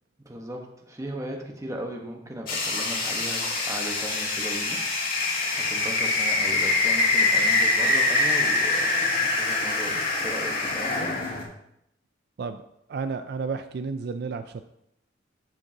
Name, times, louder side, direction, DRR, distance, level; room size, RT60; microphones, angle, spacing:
voice 1, 0.2-4.8 5.5-11.2, right 1 dB, 15° right, 2 dB, 1.1 m, -37 dB
sound 1, 2.5-11.4, left 3 dB, 50° left, 1.7 m, -24 dB
voice 2, 12.9-14.7, right 4 dB, 60° right, 10 dB, 0.4 m, -32 dB
13.0 x 5.4 x 2.8 m, 0.80 s
head